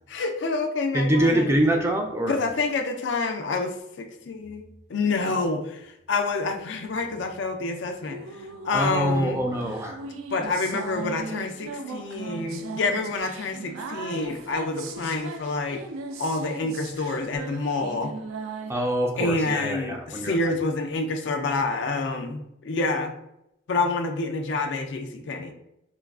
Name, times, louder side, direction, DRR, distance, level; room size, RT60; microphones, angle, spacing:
voice 1, 0.1-1.5 2.3-9.4 10.3-15.8 16.2-18.1 19.2-23.1 23.7-25.5, left 3 dB, 65° left, 5 dB, 0.4 m, -28 dB
voice 2, 0.9-2.4 8.7-10.0 18.7-20.4, right 1 dB, 15° right, 2 dB, 0.3 m, -24 dB
sound 1, 8.0-18.7, right 3 dB, 90° right, 0.4 m, -38 dB
4.4 x 2.3 x 2.3 m, 0.83 s
head